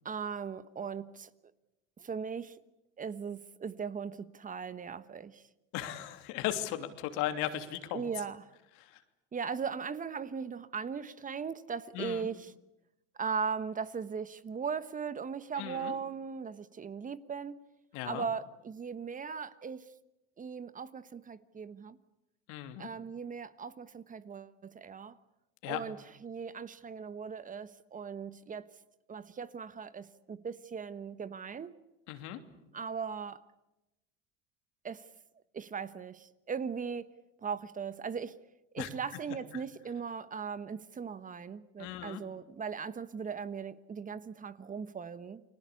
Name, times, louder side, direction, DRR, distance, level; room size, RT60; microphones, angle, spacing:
voice 1, 0.0-1.3 2.0-2.6 3.0-5.4 7.9-8.4 9.3-12.5 13.2-17.6 18.1-19.8 20.4-22.0 22.8-25.2 25.6-28.7 29.1-31.7 32.7-33.4 34.8-35.0 35.5-37.1 37.4-38.3 38.7-45.4, right 6 dB, 25° right, 1.3 m, -38 dB
voice 2, 5.7-8.1 8.8-9.0 11.9-12.3 15.6-15.9 17.9-18.2 22.5-22.9 25.6-25.8 32.1-32.4 38.8-38.9 41.8-42.2, left 12 dB, 70° left, 3.0 m, -36 dB
29.5 x 21.0 x 8.5 m
supercardioid pair, 100°, 30 cm